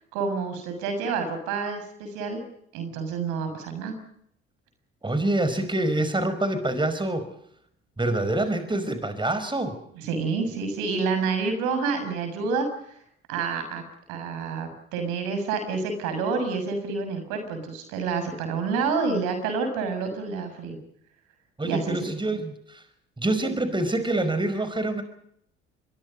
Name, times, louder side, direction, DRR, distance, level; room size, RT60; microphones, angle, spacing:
voice 1, 0.1-2.4 2.7-3.9 10.0-12.7 13.3-13.8 14.1-20.8 21.6-22.0, right 5 dB, 75° right, 8 dB, 6.8 m, -28 dB
voice 2, 5.0-7.3 8.0-9.8 21.6-22.8 23.2-25.0, right 1 dB, 15° right, 10 dB, 5.1 m, -26 dB
27.0 x 23.0 x 5.4 m, 0.70 s
hypercardioid pair, 60°, 31 cm